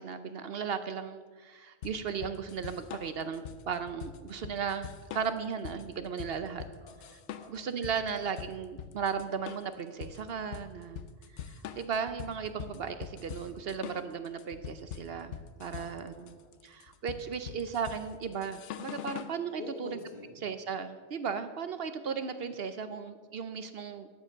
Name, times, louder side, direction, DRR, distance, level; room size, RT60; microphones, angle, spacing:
voice 1, 0.0-6.7 7.5-11.0 11.3-16.4 16.6-19.9 20.4-24.1, right 6 dB, 60° right, 10 dB, 0.8 m, -36 dB
sound 1, 1.8-19.4, left 8 dB, 80° left, 1.0 m, -44 dB
voice 2, 6.8-7.7 15.8-16.5 19.6-20.5, left 2 dB, 55° left, 2 dB, 1.9 m, -48 dB
13.0 x 7.5 x 6.5 m, 1.4 s
omnidirectional pair, 1.2 m